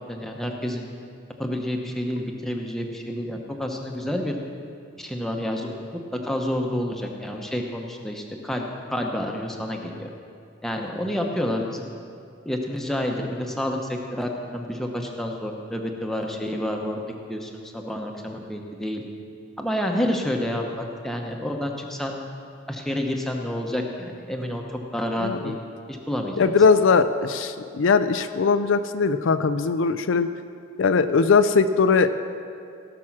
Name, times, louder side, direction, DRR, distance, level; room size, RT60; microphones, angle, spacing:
voice 1, 0.1-0.9 1.4-4.3 5.0-5.8 6.1-8.6 8.9-10.1 10.6-11.9 12.4-17.0 17.3-19.0 19.6-22.2 22.7-24.6 24.9-25.6 25.9-26.5, left 1 dB, ahead, 1 dB, 0.9 m, -29 dB
voice 2, 25.2-25.6 26.4-30.3 30.8-32.1, left 5 dB, 70° left, 11 dB, 0.4 m, -20 dB
17.5 x 6.1 x 6.0 m, 2.4 s
head